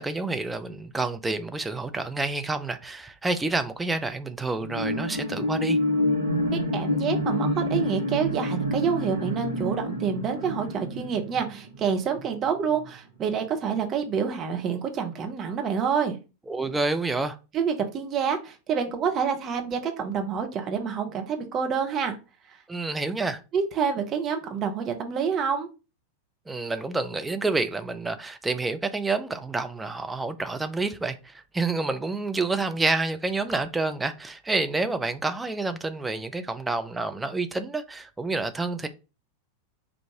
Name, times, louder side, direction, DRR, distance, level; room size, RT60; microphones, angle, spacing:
voice 1, 0.0-5.8 16.5-17.4 22.7-23.4 26.5-38.9, right 3 dB, 10° right, 0.5 m, -28 dB
sound 1, 4.6-12.3 12.8-12.9, left 1 dB, 80° right, 1.1 m, -28 dB
voice 2, 6.7-16.2 17.5-22.2 23.5-25.7, right 6 dB, 30° right, 0.9 m, -27 dB
4.6 x 2.5 x 3.5 m
figure-of-eight pair, 90°, 0 cm